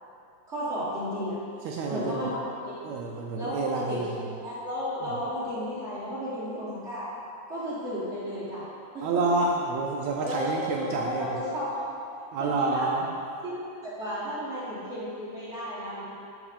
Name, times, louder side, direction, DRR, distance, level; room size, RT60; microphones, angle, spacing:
voice 1, 0.5-1.4 1.7-2.8 3.3-4.0 4.4-7.1 7.5-8.7 8.9-9.3 10.2-11.8 12.4-12.9 13.4-16.1, equal, 65° right, -11 dB, 0.7 m, -33 dB
voice 2, 1.6-2.3 2.8-4.1 5.0-5.1 9.0-11.4 12.3-13.1, right 3 dB, 80° right, 0 dB, 1.6 m, -28 dB
10.5 x 3.6 x 5.1 m, 2.5 s
omnidirectional pair, 3.7 m